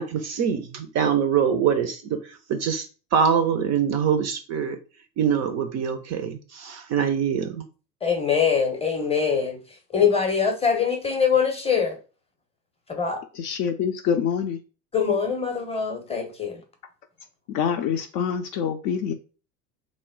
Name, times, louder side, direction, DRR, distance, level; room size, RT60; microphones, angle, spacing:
voice 1, 0.0-2.9 3.1-4.8 5.2-7.6, right 7 dB, 35° right, 0.4 m, -24 dB
voice 2, 8.0-9.6 9.9-12.0 12.9-13.2 14.9-16.6, left 6 dB, 10° left, 0.7 m, -23 dB
voice 3, 13.3-14.6 17.5-19.1, left 7 dB, 45° left, 0.5 m, -26 dB
3.1 x 2.0 x 3.7 m
figure-of-eight pair, 70°, 50 cm